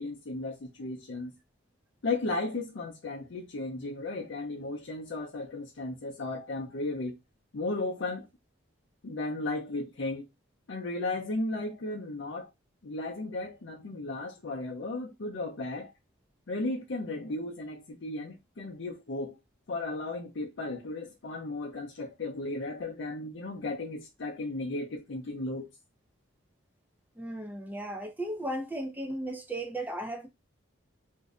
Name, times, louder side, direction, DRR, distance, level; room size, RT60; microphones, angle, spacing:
voice 1, 0.0-1.3 2.0-7.2 7.5-8.3 9.0-10.3 10.7-12.5 12.8-15.9 16.5-19.4 19.7-25.7, left 2 dB, 65° left, 0.5 m, -35 dB
voice 2, 27.2-30.3, right 1 dB, 10° right, 0.4 m, -35 dB
2.6 x 2.1 x 3.5 m
head